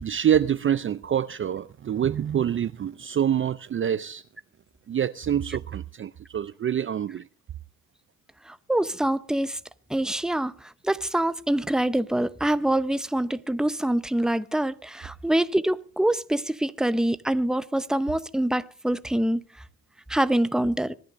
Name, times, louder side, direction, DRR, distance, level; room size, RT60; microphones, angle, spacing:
voice 1, 0.0-4.2 4.9-7.3, right 9 dB, 35° right, 0.5 m, -26 dB
voice 2, 8.7-9.6 9.9-10.5 10.8-19.4 20.1-20.9, right 1 dB, ahead, 0.8 m, -25 dB
25.0 x 11.0 x 2.6 m
hypercardioid pair, 55°, 35 cm